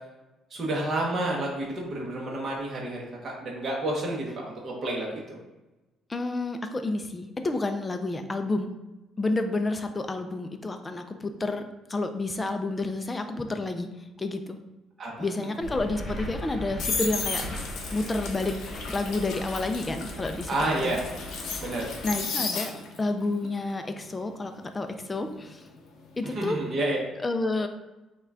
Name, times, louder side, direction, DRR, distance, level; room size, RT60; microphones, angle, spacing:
voice 1, 0.5-5.4 15.0-15.4 20.5-21.0 21.6-21.9 26.2-27.0, right 1 dB, 30° right, -3 dB, 0.8 m, -30 dB
voice 2, 6.1-8.7 9.2-11.6 11.9-13.9 14.2-14.6 15.2-17.4 17.9-18.6 18.9-21.0 22.0-22.7 23.0-25.7 26.2-26.6 27.2-27.7, left 2 dB, 15° left, 7 dB, 0.3 m, -30 dB
sound 1, 15.6-22.3, left 1 dB, 35° left, 1.1 m, -39 dB
sound 2, 16.4-23.1 23.4-26.3 26.6-26.9, left 4 dB, 60° left, 0.8 m, -35 dB
5.6 x 2.2 x 3.6 m, 1.1 s
cardioid pair, 175°, 0 cm